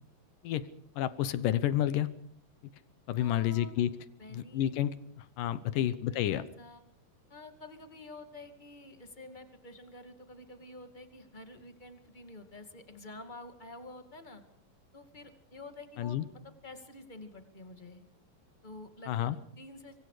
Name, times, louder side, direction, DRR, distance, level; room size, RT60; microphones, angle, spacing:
voice 1, 1.0-2.1 3.1-3.9 4.3-5.0 5.4-6.4 16.0-16.3 19.1-19.4, left 12 dB, 70° left, 15 dB, 2.2 m, -29 dB
voice 2, 3.2-3.8 4.2-4.7 5.7-6.8 7.3-14.4 14.9-16.2 16.4-18.0 18.6-20.0, left 2 dB, 15° left, 7 dB, 1.6 m, -49 dB
25.0 x 24.0 x 5.0 m, 0.63 s
omnidirectional pair, 4.5 m